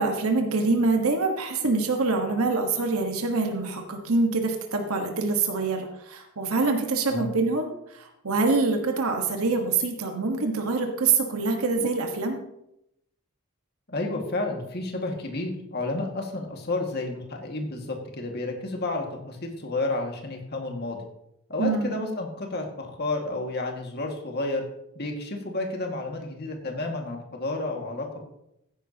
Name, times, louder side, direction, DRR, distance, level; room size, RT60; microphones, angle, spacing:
voice 1, 0.0-12.4 21.6-22.0, right 3 dB, 85° right, 3 dB, 1.4 m, -25 dB
voice 2, 13.9-21.0 21.5-24.6 25.0-28.2, left 2 dB, 50° left, 2 dB, 1.9 m, -31 dB
15.0 x 10.0 x 2.9 m, 0.81 s
head